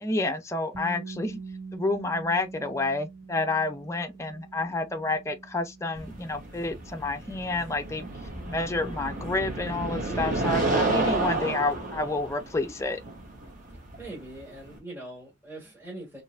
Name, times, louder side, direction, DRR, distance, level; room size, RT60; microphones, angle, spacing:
voice 1, 0.0-1.4 1.7-8.1 8.4-13.0, left 2 dB, 15° left, 0.5 m, -29 dB
sound 1, 0.7-12.6, right 4 dB, 65° right, 1.8 m, -46 dB
sound 2, 5.9-14.8, right 2 dB, 45° right, 1.5 m, -31 dB
voice 2, 14.0-16.2, right 2 dB, 15° right, 1.9 m, -42 dB
4.3 x 3.2 x 2.4 m
head